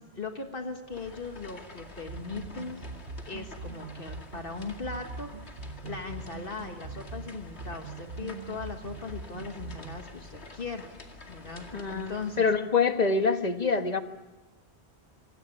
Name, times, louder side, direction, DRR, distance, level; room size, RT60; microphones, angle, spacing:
voice 1, 0.0-2.9 3.3-5.3 5.8-10.9 11.3-12.5, left 4 dB, 60° left, 5 dB, 1.7 m, -39 dB
sound 1, 0.9-12.4, left 2 dB, 90° left, 2.5 m, -48 dB
sound 2, 2.1-10.1, right 4 dB, 75° right, 1.5 m, -42 dB
voice 2, 11.7-14.0, left 4 dB, 40° left, 7 dB, 1.4 m, -26 dB
26.0 x 17.0 x 9.9 m, 1.2 s
omnidirectional pair, 1.1 m